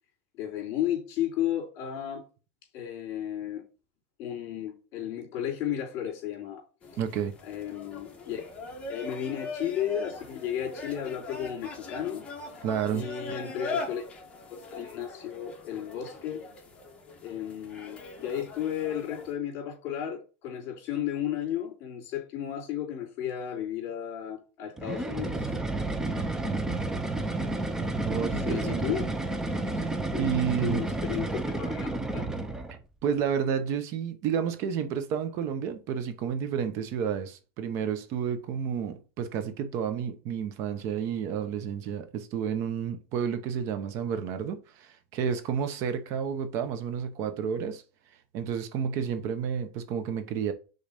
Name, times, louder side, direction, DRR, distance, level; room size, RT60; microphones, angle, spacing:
voice 1, 0.4-2.2 2.7-3.6 4.2-6.6 7.4-8.4 8.9-12.2 12.9-14.0 14.5-16.4 17.2-25.5 28.4-29.1 29.6-29.9 30.1-30.2 30.6-32.3, left 10 dB, 45° left, 2.9 m, -33 dB
sound 1, 6.8-19.3, left 3 dB, 15° left, 1.6 m, -41 dB
voice 2, 7.0-7.3 12.6-13.0 26.1-26.6 28.0-29.0 30.2-30.8 33.0-47.8 48.3-50.5, right 7 dB, 45° right, 0.8 m, -31 dB
sound 2, 24.8-32.8, right 2 dB, 10° right, 0.7 m, -31 dB
5.3 x 3.9 x 5.1 m
supercardioid pair, 145°, 7 cm